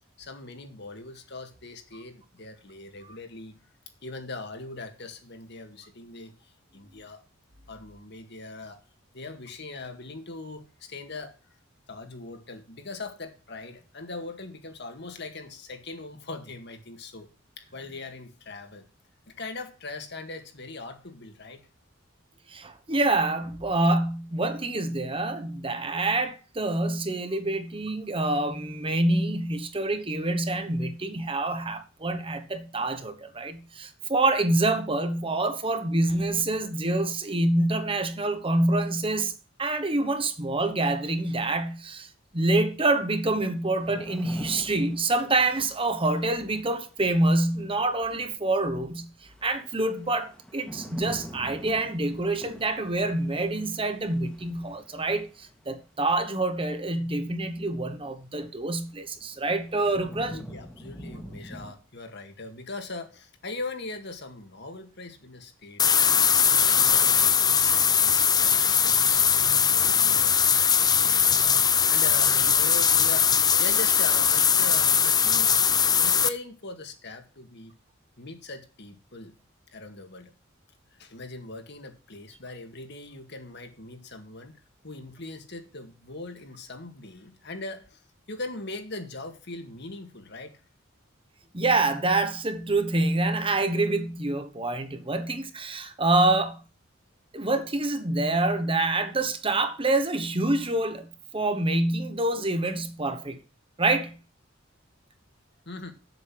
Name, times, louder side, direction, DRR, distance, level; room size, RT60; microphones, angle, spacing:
voice 1, 0.2-3.5 4.0-7.2 7.7-8.8 9.1-11.6 11.9-17.3 17.6-18.9 19.3-21.7 27.3-27.4 60.3-66.3 66.8-70.4 70.8-71.6 71.9-75.5 76.0-77.7 78.2-79.3 79.7-80.3 80.9-84.6 84.8-88.0 88.3-90.5 105.7-105.9, left 3 dB, 60° left, 2.1 m, -40 dB
voice 2, 22.5-39.3 39.6-49.1 49.4-60.4 91.5-96.6 97.3-103.4 103.8-104.1, right 2 dB, 25° right, 1.2 m, -26 dB
sound 1, 43.8-46.9 49.3-55.6 58.2-58.3 58.9-61.7, equal, 5° left, 1.6 m, -45 dB
sound 2, 65.8-76.3, left 7 dB, 20° left, 0.6 m, -21 dB
7.9 x 7.9 x 7.8 m
head